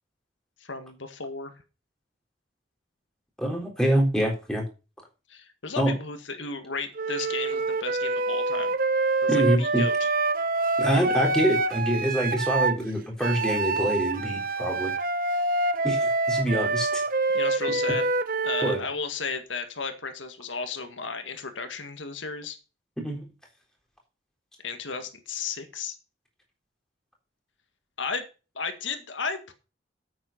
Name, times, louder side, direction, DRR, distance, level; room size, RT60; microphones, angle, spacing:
voice 1, 0.6-1.5 5.3-8.7 9.2-10.0 17.3-18.1 18.4-22.6 24.6-26.0 28.0-28.2 28.6-29.5, left 5 dB, 85° left, 7 dB, 1.8 m, -34 dB
voice 2, 3.4-4.6 5.8-6.0 9.3-9.8 10.8-14.9 15.8-17.0 18.6-18.8 23.0-23.3, right 1 dB, 5° left, 0 dB, 3.8 m, -25 dB
Wind instrument woodwind instrument, 7.0-12.8 13.2-18.8, right 3 dB, 50° right, 0.9 m, -26 dB
8.9 x 7.8 x 5.8 m, 0.31 s
head